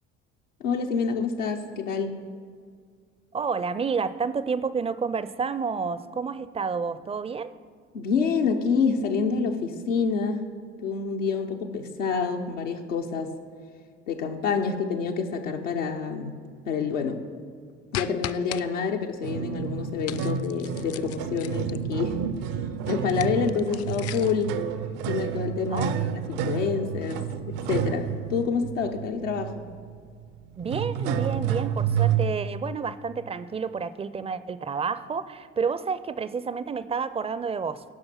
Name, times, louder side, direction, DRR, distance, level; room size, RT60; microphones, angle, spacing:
voice 1, 0.6-2.2 7.9-10.4 10.8-13.3 14.1-16.4 16.6-17.2 17.9-22.2 22.9-24.6 25.0-29.6, left 5 dB, 85° left, 2 dB, 0.7 m, -27 dB
voice 2, 3.3-7.5 25.7-26.2 30.6-37.8, right 5 dB, 15° right, 15 dB, 0.4 m, -30 dB
sound 1, 17.9-18.6 20.0-21.9 23.0-24.4, left 12 dB, 40° left, 0.4 m, -37 dB
sound 2, 19.2-32.3, right 8 dB, 70° right, 0.6 m, -30 dB
11.5 x 5.3 x 5.8 m, 2.1 s
hypercardioid pair, 55°, 37 cm